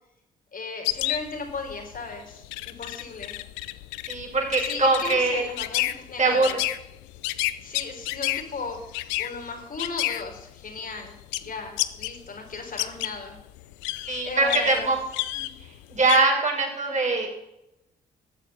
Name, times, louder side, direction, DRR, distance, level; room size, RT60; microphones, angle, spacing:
voice 1, 0.5-3.4 4.6-6.6 7.6-11.1 11.4-13.4 14.2-14.9, left 4 dB, 50° left, 3 dB, 4.2 m, -36 dB
sound 1, 0.8-12.2 12.5-16.2, left 17 dB, 85° left, 0.6 m, -31 dB
voice 2, 4.1-5.4 6.2-6.5 14.1-15.0 15.3-15.5 15.9-17.3, right 3 dB, 40° right, 0 dB, 6.2 m, -22 dB
13.5 x 8.4 x 7.0 m, 0.87 s
hypercardioid pair, 50°, 18 cm